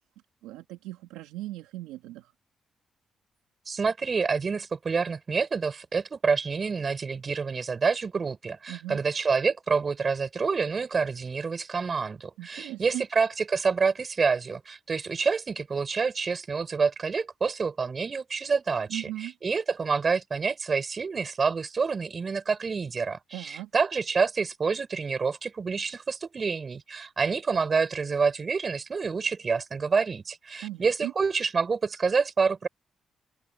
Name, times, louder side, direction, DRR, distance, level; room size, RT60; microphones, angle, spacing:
voice 1, 0.4-2.3 8.7-9.0 12.4-13.0 18.9-19.3 23.3-23.7 30.6-31.1, right 16 dB, 85° right, 2.2 m, -38 dB
voice 2, 3.7-32.7, right 5 dB, 45° right, 5.9 m, -27 dB
open air
supercardioid pair, 50°, 0 cm